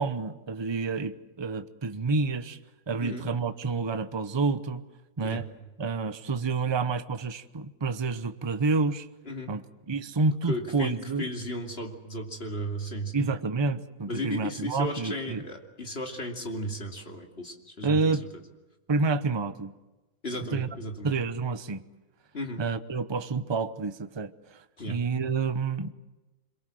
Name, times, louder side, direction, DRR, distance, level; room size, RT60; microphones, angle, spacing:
voice 1, 0.0-2.6 2.9-4.8 5.2-5.5 5.8-9.1 9.5-11.3 13.1-15.4 17.8-18.2 18.9-19.7 20.4-20.7 21.0-21.8 22.6-25.9, right 4 dB, 25° right, 0.8 m, -29 dB
voice 2, 10.5-13.1 14.1-18.2 20.2-21.1 22.3-22.6 24.8-25.0, equal, 45° left, 3.0 m, -35 dB
26.0 x 23.5 x 7.7 m
omnidirectional pair, 1.4 m